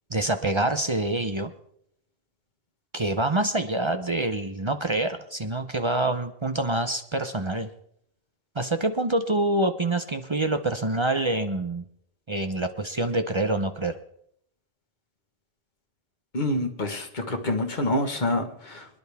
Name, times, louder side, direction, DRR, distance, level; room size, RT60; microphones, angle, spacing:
voice 1, 0.1-1.5 2.9-7.7 8.6-11.8 12.3-14.0, right 2 dB, 30° right, 8 dB, 0.7 m, -26 dB
voice 2, 16.3-19.0, left 1 dB, 45° left, 4 dB, 1.7 m, -27 dB
25.5 x 10.5 x 3.5 m, 0.69 s
omnidirectional pair, 1.1 m